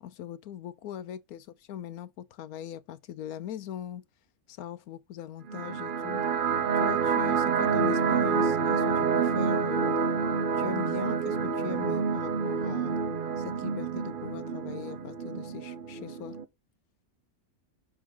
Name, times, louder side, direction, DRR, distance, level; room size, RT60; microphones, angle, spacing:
voice 1, 0.0-4.1 4.5-6.2 6.7-10.0 10.5-13.0 13.4-16.4, left 10 dB, 80° left, 1.1 m, -40 dB
sound 1, 5.5-16.4, right 6 dB, 50° right, 0.6 m, -28 dB
6.3 x 4.8 x 3.7 m
omnidirectional pair, 1.6 m